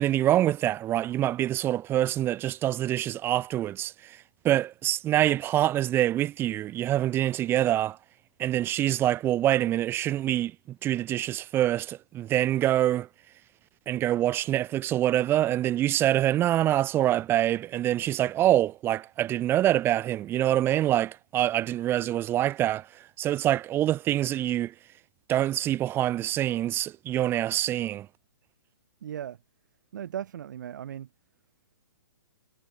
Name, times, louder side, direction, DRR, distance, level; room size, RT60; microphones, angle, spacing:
voice 1, 0.0-4.2 4.4-8.0 8.4-13.1 13.9-24.7 25.3-28.1, right 13 dB, 20° right, 1.7 m, -25 dB
voice 2, 29.0-29.4 29.9-31.1, right 10 dB, 60° right, 3.0 m, -37 dB
hypercardioid pair, 145°, 11 cm